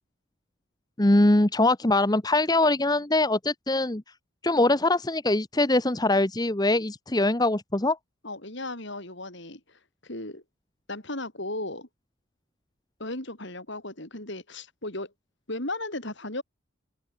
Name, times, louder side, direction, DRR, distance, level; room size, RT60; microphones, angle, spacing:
voice 1, 1.0-4.0 4.4-8.0, left 2 dB, 20° left, 1.1 m, -22 dB
voice 2, 8.2-10.4 10.9-11.9 13.0-15.1 15.5-16.4, left 2 dB, 55° left, 5.9 m, -36 dB
open air
head